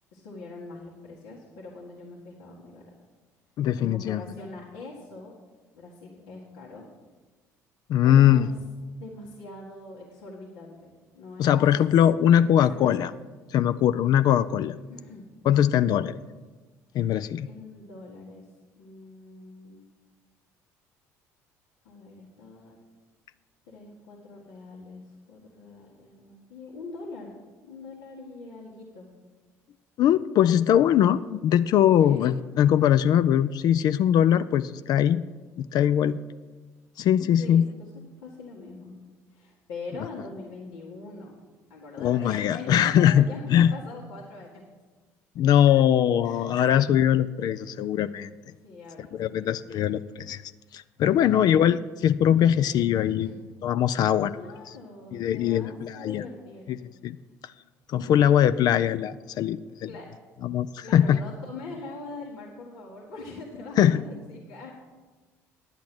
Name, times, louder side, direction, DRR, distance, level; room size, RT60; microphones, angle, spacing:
voice 1, 0.1-2.9 3.8-5.4 5.7-6.9 8.0-8.5 8.9-11.6 12.7-13.1 14.7-15.3 17.5-18.5 18.8-19.9 21.8-22.8 23.7-27.3 27.6-29.1 32.0-32.3 37.4-37.9 38.2-38.9 39.3-41.4 41.7-44.6 46.2-46.5 48.6-49.6 51.0-51.6 53.0-53.4 54.3-56.8 57.9-58.1 59.8-60.1 60.8-64.7, left 3 dB, 80° left, -6 dB, 1.7 m, -42 dB
voice 2, 3.6-4.2 7.9-8.5 11.4-13.1 13.5-14.8 15.5-16.2 16.9-17.5 30.0-35.2 35.6-36.2 37.0-37.7 42.0-43.2 43.5-43.7 45.4-48.3 49.1-50.4 50.7-53.3 53.6-54.4 55.1-56.2 57.0-57.2 57.9-59.9 60.4-61.2 63.8-64.0, left 10 dB, 55° left, 13 dB, 0.4 m, -21 dB
10.5 x 8.4 x 6.1 m, 1.3 s
hypercardioid pair, 65°, 8 cm